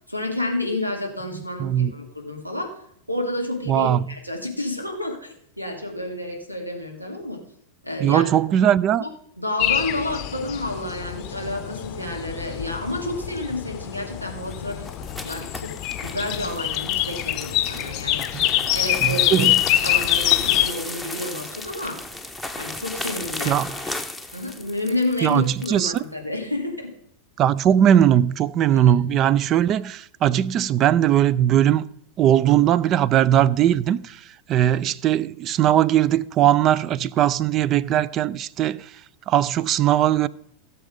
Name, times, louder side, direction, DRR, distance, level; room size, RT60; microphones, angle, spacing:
voice 1, 0.1-2.8 3.1-7.4 7.8-8.3 9.0-9.1 9.4-14.9 15.2-19.5 19.8-22.0 22.6-23.9 24.3-26.9 28.7-28.9, left 1 dB, 90° right, 2.5 m, -30 dB
voice 2, 1.6-1.9 3.7-4.0 8.0-9.0 18.3-18.4 19.0-19.6 23.5-23.7 25.2-26.0 27.4-31.9 32.2-38.9 39.3-40.3, right 11 dB, 35° right, 0.4 m, -19 dB
sound 1, 9.6-20.7, left 13 dB, 40° left, 0.7 m, -25 dB
sound 2, 14.4-26.0, left 2 dB, ahead, 1.1 m, -35 dB
16.5 x 6.9 x 5.1 m
figure-of-eight pair, 90°, 0 cm